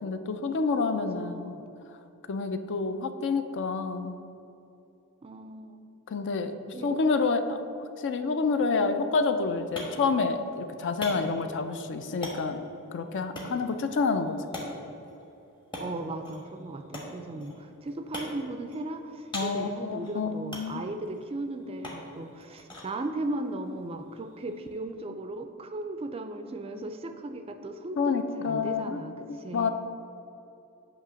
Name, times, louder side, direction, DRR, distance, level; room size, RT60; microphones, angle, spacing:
voice 1, 0.0-1.5 2.3-4.1 6.1-12.7 12.9-14.4 19.3-20.8 28.0-29.0 29.3-29.7, left 4 dB, 55° left, 8 dB, 0.4 m, -28 dB
voice 2, 0.9-1.6 5.2-5.8 6.7-7.0 15.8-29.7, right 2 dB, 25° right, 8 dB, 0.3 m, -37 dB
sound 1, 9.2-24.8, left 1 dB, 20° left, 1.1 m, -44 dB
8.2 x 3.0 x 6.2 m, 2.8 s
head